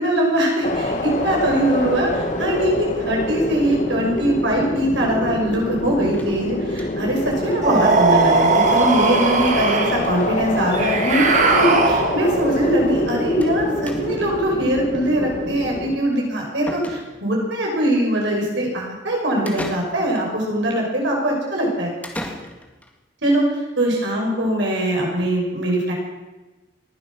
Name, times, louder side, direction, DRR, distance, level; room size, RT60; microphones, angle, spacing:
voice 1, 0.0-21.9 23.2-23.4 23.8-25.9, right 1 dB, 65° right, -1 dB, 5.7 m, -21 dB
sound 1, 0.6-16.0, left 1 dB, 40° left, 1.6 m, -26 dB
sound 2, 6.1-7.2 7.5-7.6 7.9-8.0 8.2-8.3 9.5-9.7 10.0-10.3 11.2-11.3 11.6-11.7 13.4-13.6 13.9-14.3 16.1-16.2 16.7-17.4 19.5-20.3 22.0-22.9, left 1 dB, 10° left, 1.9 m, -36 dB
sound 3, 7.6-10.1 10.7-12.4, right 3 dB, 40° right, 1.8 m, -19 dB
19.5 x 11.5 x 6.2 m, 1.1 s
head